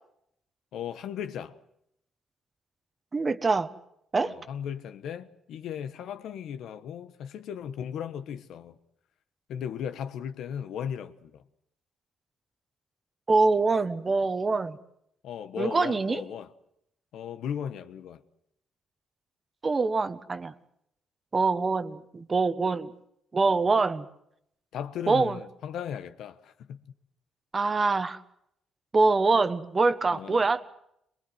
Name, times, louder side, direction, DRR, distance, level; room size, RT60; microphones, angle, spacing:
voice 1, 0.7-1.5 4.2-8.8 9.5-11.4 15.2-16.5 17.1-18.2 23.5-23.7 24.7-26.8 30.1-30.4, left 8 dB, 80° left, 1.3 m, -36 dB
voice 2, 3.1-3.7 4.1-4.3 13.3-14.8 15.6-16.2 19.6-20.5 21.3-22.9 23.3-24.1 25.1-25.4 27.5-28.2 28.9-30.6, right 3 dB, 30° right, 1.3 m, -24 dB
23.0 x 21.5 x 7.9 m
cardioid pair, 90°, 0 cm